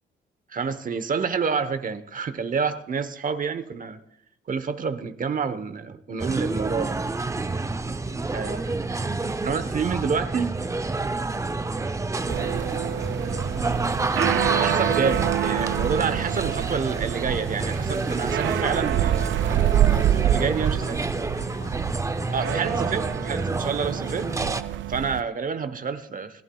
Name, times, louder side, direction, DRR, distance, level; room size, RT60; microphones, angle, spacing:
voice 1, 0.5-4.0 4.5-7.0 8.3-8.8 9.4-10.6 11.8-12.0 14.5-19.4 20.1-21.0 22.3-24.3 24.9-26.4, right 5 dB, 45° right, 11 dB, 1.0 m, -28 dB
sound 1, 6.2-24.6, right 3 dB, 15° right, 0.6 m, -28 dB
voice 2, 7.9-9.4 11.0-14.5 20.2-22.9 24.6-24.8, left 4 dB, 85° left, 2 dB, 3.3 m, -49 dB
sound 2, 12.3-25.2, right 11 dB, 70° right, 0.5 m, -27 dB
29.0 x 11.5 x 2.3 m, 0.72 s
cardioid pair, 90°, 20 cm